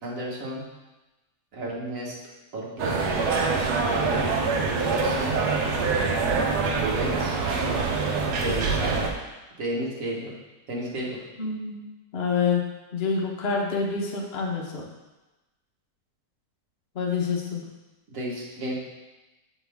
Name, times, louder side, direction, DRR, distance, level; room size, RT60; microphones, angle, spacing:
voice 1, 0.0-0.6 1.5-2.1 2.5-3.1 3.9-4.3 4.7-5.6 6.7-7.8 8.4-9.1 9.6-10.3 10.7-11.2 18.1-18.9, right 1 dB, 55° right, -4 dB, 1.7 m, -32 dB
sound 1, 2.8-9.1, right 4 dB, 75° right, 1.3 m, -25 dB
voice 2, 11.4-11.8 12.1-12.6 12.9-14.8 16.9-17.6, left 5 dB, 45° left, -1 dB, 1.0 m, -27 dB
6.7 x 4.5 x 3.5 m, 1.1 s
omnidirectional pair, 1.7 m